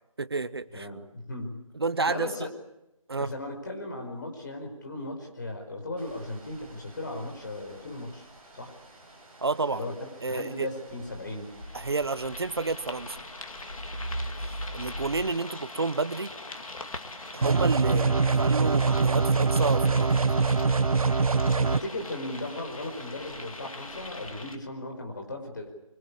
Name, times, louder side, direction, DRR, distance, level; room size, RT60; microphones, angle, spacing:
voice 1, 0.2-0.9 1.7-2.3 3.1-3.4 9.4-9.9 10.2-10.7 11.7-13.2 14.4-16.3 17.3-18.1 18.4-20.2, right 3 dB, 45° right, 15 dB, 1.0 m, -30 dB
voice 2, 0.7-1.6 2.0-2.5 3.2-8.3 8.5-8.7 9.7-11.5 17.9-18.1 21.5-25.7, left 2 dB, 35° left, 2 dB, 5.1 m, -37 dB
sound 1, 6.0-24.3, right 1 dB, 20° right, 7.2 m, -45 dB
sound 2, 11.5-24.6, left 2 dB, 75° left, 2.7 m, -42 dB
sound 3, 17.4-21.8, right 4 dB, 80° right, 1.0 m, -23 dB
24.5 x 23.5 x 8.5 m, 0.87 s
figure-of-eight pair, 180°, 18 cm